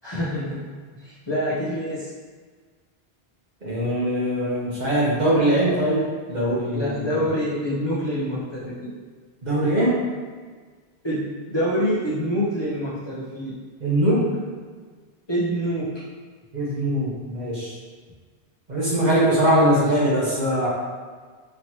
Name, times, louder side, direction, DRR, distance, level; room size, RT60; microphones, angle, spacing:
voice 1, 0.0-0.7 0.9-2.1 6.5-8.9 11.0-13.5 15.3-16.0 19.5-19.9, equal, 30° left, -9 dB, 0.8 m, -26 dB
voice 2, 3.6-7.2 9.4-9.9 13.8-14.3 16.5-17.7 18.7-20.7, right 1 dB, 45° right, -6 dB, 1.0 m, -21 dB
4.3 x 3.1 x 2.9 m, 1.5 s
omnidirectional pair, 1.0 m